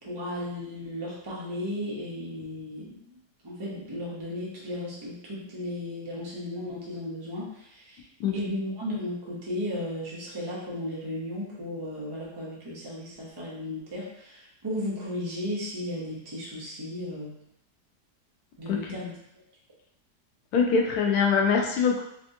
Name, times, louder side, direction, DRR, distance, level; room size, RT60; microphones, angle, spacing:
voice 1, 0.0-3.2 3.4-8.0 8.3-17.3 18.6-19.1, left 1 dB, 25° right, -6 dB, 0.5 m, -35 dB
voice 2, 8.2-8.5 18.7-19.0 20.5-22.0, left 5 dB, 75° left, 1 dB, 1.0 m, -24 dB
3.3 x 2.6 x 2.6 m, 0.76 s
omnidirectional pair, 1.8 m